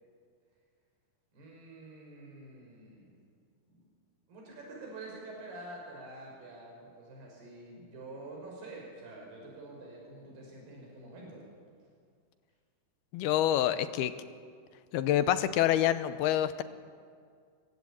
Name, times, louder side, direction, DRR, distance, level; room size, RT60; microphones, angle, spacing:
voice 1, 1.3-3.1 3.7-3.8 4.3-11.4, right 2 dB, 85° right, -2 dB, 7.6 m, -47 dB
voice 2, 13.1-14.1 14.9-16.6, left 11 dB, 85° left, 12 dB, 2.9 m, -27 dB
24.0 x 23.5 x 8.8 m, 2.1 s
omnidirectional pair, 4.5 m